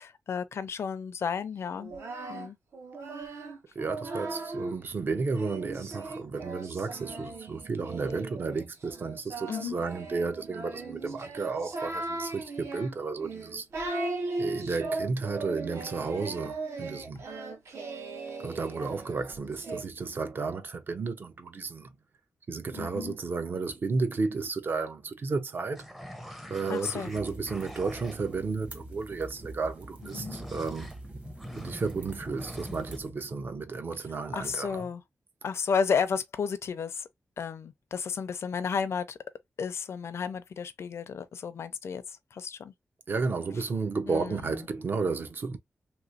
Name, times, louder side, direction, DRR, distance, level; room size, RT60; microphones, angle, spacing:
voice 1, 0.0-1.9 2.3-2.6 9.5-9.8 22.7-23.2 26.7-27.1 30.1-30.4 34.3-35.0 35.4-37.1 37.4-39.2 39.6-42.7 44.1-44.7, left 6 dB, 70° left, 0.5 m, -32 dB
Singing, 1.7-4.8 5.3-19.8, right 2 dB, 75° right, 1.1 m, -38 dB
voice 2, 3.7-13.7 14.4-17.2 18.4-21.9 22.5-25.8 26.5-30.9 31.6-34.9 43.1-45.6, right 4 dB, 45° right, 0.6 m, -33 dB
sound 1, 25.7-28.4 30.0-33.0, equal, 5° right, 0.6 m, -43 dB
sound 2, 27.0-33.1, right 1 dB, 30° right, 1.0 m, -45 dB
3.1 x 3.0 x 2.4 m
wide cardioid pair, 180°, 5 cm